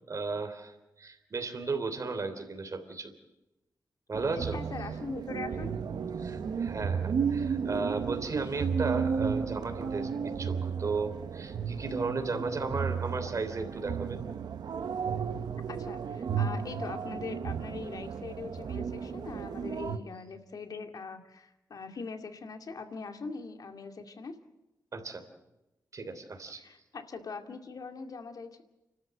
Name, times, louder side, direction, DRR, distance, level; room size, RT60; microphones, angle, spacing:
voice 1, 0.1-3.1 4.1-4.6 6.2-14.2 19.8-20.0 24.9-25.2 25.9-26.6, right 4 dB, 50° right, 6 dB, 3.3 m, -35 dB
sound 1, 4.1-20.0, right 6 dB, 85° right, 1.0 m, -33 dB
voice 2, 4.5-5.7 15.7-24.4 26.5-28.6, left 4 dB, 65° left, 6 dB, 2.3 m, -41 dB
29.5 x 13.0 x 7.9 m, 0.96 s
wide cardioid pair, 105°, 7 cm